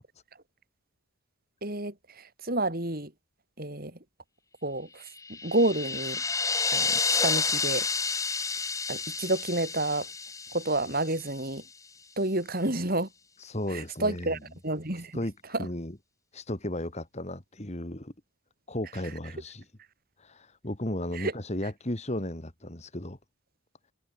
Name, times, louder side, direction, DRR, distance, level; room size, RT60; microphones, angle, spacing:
voice 1, 1.6-3.1 3.6-4.0 4.6-6.2 6.7-7.9 8.9-10.1 10.5-11.6 12.2-13.1 13.7-15.2 15.5-15.7 21.1-21.3, right 2 dB, 40° right, 3.7 m, -30 dB
sound 1, 5.2-11.4, left 4 dB, 15° left, 1.5 m, -30 dB
voice 2, 13.5-14.4 15.1-15.3 15.6-16.0 16.3-18.1 18.7-19.6 20.2-23.2, left 1 dB, 30° left, 2.0 m, -34 dB
head